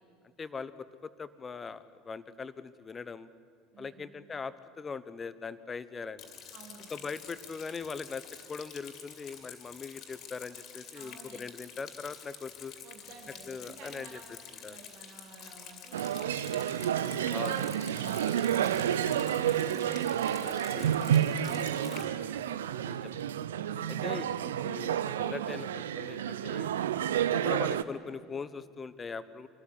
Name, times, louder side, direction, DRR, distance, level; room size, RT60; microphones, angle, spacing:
voice 1, 0.4-0.7 1.2-3.3 3.8-6.3 6.9-12.7 13.5-14.2 14.6-14.8 17.3-17.7 20.4-21.0 21.5-21.7 22.8-23.2 23.9-24.3 24.6-26.7 27.3-29.5, left 5 dB, 25° left, 15 dB, 0.9 m, -41 dB
voice 2, 3.7-4.1 6.5-6.9 10.9-11.4 12.8-14.2 14.7-16.8 17.1-20.6 21.1-22.9, right 5 dB, 60° right, 2 dB, 2.7 m, -52 dB
Rain, 6.2-22.1, left 7 dB, 50° left, 2.6 m, -49 dB
sound 1, 15.9-27.8, right 10 dB, 75° right, 0.5 m, -30 dB
24.5 x 13.0 x 10.0 m, 2.2 s
figure-of-eight pair, 70°, 0 cm